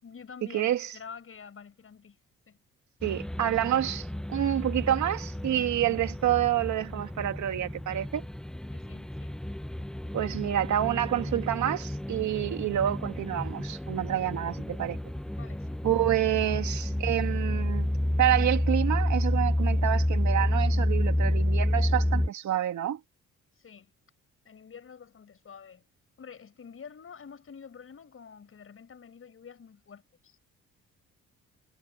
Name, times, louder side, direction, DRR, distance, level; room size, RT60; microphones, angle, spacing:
voice 1, 0.0-2.2 2.5-2.6 8.7-9.3 14.1-14.3 15.4-15.8 23.6-23.9 24.4-25.8 26.2-30.4, left 6 dB, 45° left, 6.2 m, -48 dB
voice 2, 0.5-0.9 3.0-8.2 10.1-15.0 15.8-17.9 18.2-23.0, right 12 dB, 70° right, 2.3 m, -28 dB
sound 1, 3.0-22.3, left 1 dB, ahead, 0.4 m, -30 dB
cardioid pair, 90°, 30 cm